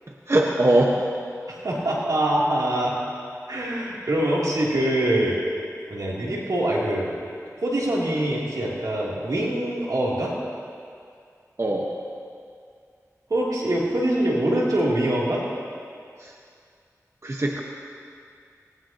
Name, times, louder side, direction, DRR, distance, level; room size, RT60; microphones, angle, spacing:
voice 1, 0.3-1.0 11.6-11.9 16.2-16.3 17.2-17.6, right 1 dB, 50° right, -1 dB, 1.4 m, -21 dB
voice 2, 1.5-3.0 3.5-5.4 5.9-7.1 7.6-10.3 13.3-15.4, right 1 dB, 90° right, -6 dB, 3.2 m, -24 dB
19.5 x 18.5 x 3.0 m, 2.3 s
wide cardioid pair, 40°, 6 cm